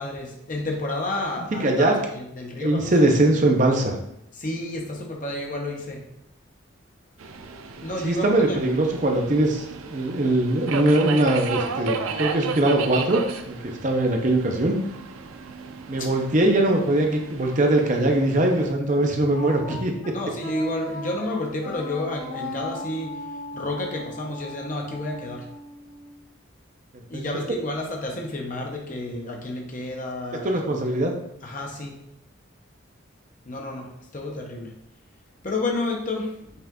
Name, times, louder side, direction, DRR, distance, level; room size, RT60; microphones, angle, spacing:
voice 1, 0.0-2.9 4.3-6.0 7.8-8.7 16.0-16.1 20.1-23.2 23.5-25.5 27.1-30.8 31.4-32.0 33.5-34.7 35.4-36.3, left 2 dB, 40° left, 0 dB, 0.7 m, -30 dB
voice 2, 1.4-2.0 2.6-4.0 8.0-9.6 9.9-13.2 13.5-14.8 15.9-20.1 27.1-27.2 30.4-31.1, right 1 dB, 35° right, 2 dB, 0.6 m, -21 dB
Subway metro underground, 7.2-18.7, right 5 dB, 85° right, 0.4 m, -34 dB
Wind instrument woodwind instrument, 19.3-26.2, left 1 dB, 90° left, 1.1 m, -37 dB
5.6 x 2.5 x 3.6 m, 0.79 s
head